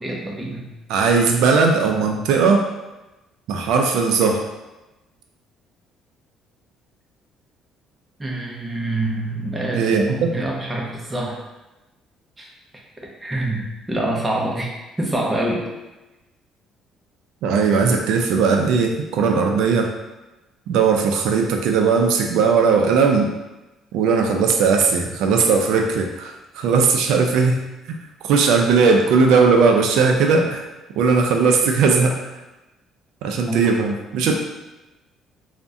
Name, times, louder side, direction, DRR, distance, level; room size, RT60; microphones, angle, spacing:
voice 1, 0.0-0.7 8.2-9.9 10.3-11.4 12.4-12.5 13.2-14.7 15.0-15.7 33.5-33.7 34.2-34.4, right 1 dB, 10° right, -2 dB, 0.5 m, -26 dB
voice 2, 0.9-2.7 3.5-4.5 9.7-10.3 17.4-19.9 20.7-23.3 23.9-27.6 27.9-28.0 28.2-30.6 31.0-32.2 33.2-34.4, right 5 dB, 80° right, 2 dB, 0.3 m, -18 dB
3.5 x 2.1 x 2.6 m, 1.0 s
cardioid pair, 165°, 0 cm